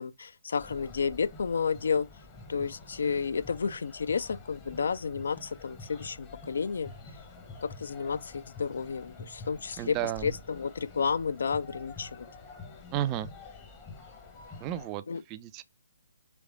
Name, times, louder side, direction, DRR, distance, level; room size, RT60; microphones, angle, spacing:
voice 1, 0.0-2.1 2.5-6.9 7.6-10.0 10.2-12.3 15.1-15.2, left 5 dB, 60° left, 0.4 m, -31 dB
sound 1, 0.6-14.9, left 3 dB, 20° left, 0.8 m, -48 dB
voice 2, 9.8-10.3 12.9-13.3 14.6-15.6, right 12 dB, 20° right, 0.3 m, -33 dB
3.4 x 3.0 x 3.7 m
figure-of-eight pair, 135°, 0 cm